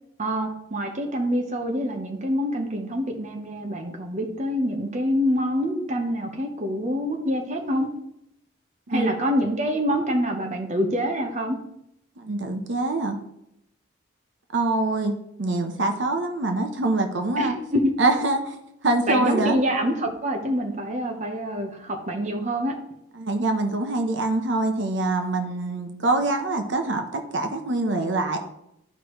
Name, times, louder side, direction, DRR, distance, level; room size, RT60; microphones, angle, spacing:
voice 1, 0.2-7.9 8.9-11.6 17.4-17.9 19.1-22.8, equal, 35° right, 3 dB, 0.9 m, -26 dB
voice 2, 8.9-9.2 12.2-13.2 14.5-17.5 18.0-18.4 18.8-19.6 23.2-27.0 27.3-28.4, right 2 dB, 60° right, 5 dB, 0.8 m, -24 dB
13.0 x 4.8 x 3.1 m, 0.79 s
head